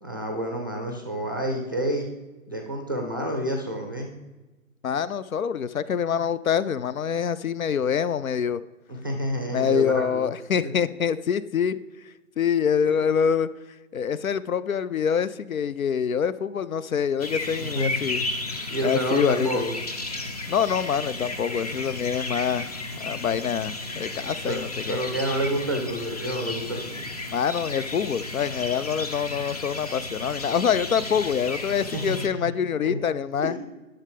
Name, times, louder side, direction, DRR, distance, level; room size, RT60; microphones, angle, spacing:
voice 1, 0.0-2.1 2.5-4.1 8.9-10.3 10.6-10.7 12.8-13.0 17.6-17.9 18.7-19.7 24.4-27.1 31.9-32.0 32.4-33.0 33.4-33.6, right 1 dB, 15° right, 2 dB, 0.5 m, -29 dB
voice 2, 4.8-8.6 9.5-11.8 12.4-13.5 13.9-18.2 18.8-19.6 20.5-25.0 27.3-33.6, left 7 dB, 70° left, 16 dB, 0.5 m, -25 dB
sound 1, 17.2-32.3, left 2 dB, 30° left, 0.6 m, -33 dB
11.0 x 6.9 x 3.4 m, 1.2 s
figure-of-eight pair, 140°, 43 cm